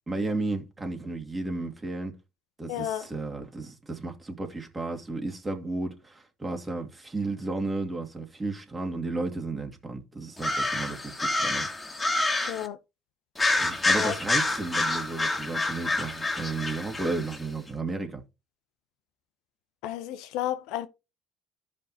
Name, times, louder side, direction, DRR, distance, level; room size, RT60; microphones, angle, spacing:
voice 1, 0.1-2.1 2.6-11.7 13.5-18.2, right 3 dB, 25° right, 2.3 m, -33 dB
voice 2, 2.7-3.1 12.5-12.8 13.9-14.2 19.8-20.9, left 12 dB, 75° left, 0.7 m, -32 dB
sound 1, 10.4-12.7 13.4-17.4, left 2 dB, 20° left, 2.0 m, -28 dB
13.5 x 5.4 x 2.8 m
hypercardioid pair, 60°, 0 cm